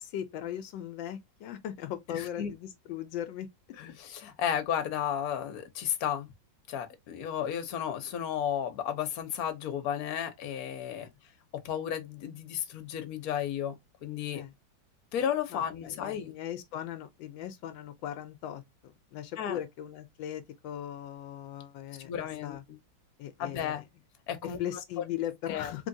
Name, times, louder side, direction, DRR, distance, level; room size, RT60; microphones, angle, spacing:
voice 1, 0.0-3.5 11.0-11.1 14.3-14.5 15.5-22.1 22.4-22.6 23.2-23.8 24.4-25.9, left 11 dB, 80° left, 1.3 m, -38 dB
voice 2, 2.1-2.5 3.8-6.3 6.7-11.1 11.6-13.7 14.0-14.4 15.1-16.3 19.4-19.6 22.0-22.8 23.4-23.8 24.3-24.6 25.0-25.1 25.5-25.7, left 9 dB, 60° left, 1.2 m, -33 dB
3.7 x 3.4 x 2.6 m
omnidirectional pair, 2.0 m